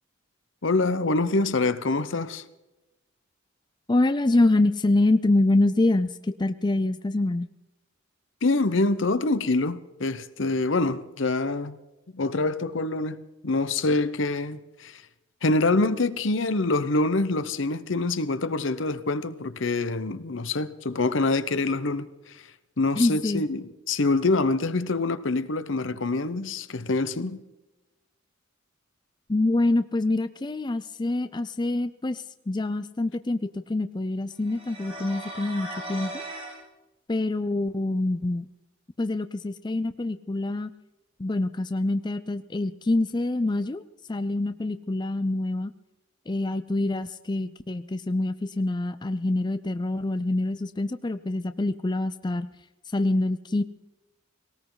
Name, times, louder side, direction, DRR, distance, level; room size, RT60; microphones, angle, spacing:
voice 1, 0.6-2.4 8.4-11.8 12.1-15.0 15.4-22.1 22.3-22.4 22.8-27.4, left 3 dB, 65° left, 0.9 m, -25 dB
voice 2, 3.9-7.5 23.0-23.4 29.3-36.2 37.1-38.5 39.0-40.7 41.2-43.8 44.1-45.7 46.3-52.5 52.9-53.6, left 2 dB, 20° left, 0.5 m, -25 dB
sound 1, 34.4-36.6, right 1 dB, 30° right, 6.1 m, -38 dB
19.0 x 18.5 x 4.0 m
head